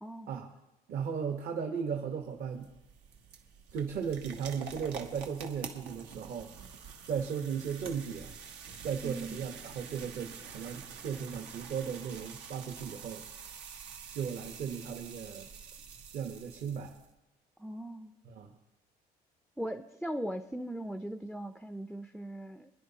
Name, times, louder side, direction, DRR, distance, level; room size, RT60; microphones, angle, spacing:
voice 1, 0.0-0.3 9.0-9.4 17.6-18.1 19.6-22.7, right 1 dB, ahead, 9 dB, 0.4 m, -39 dB
voice 2, 0.9-2.7 3.7-6.5 7.1-8.3 8.8-13.2 14.1-15.5 16.1-17.0 18.2-18.5, right 7 dB, 60° right, 3 dB, 1.1 m, -36 dB
sound 1, 2.2-17.1, right 6 dB, 90° right, 1.2 m, -47 dB
24.5 x 10.5 x 2.8 m, 0.98 s
cardioid pair, 110°, 17 cm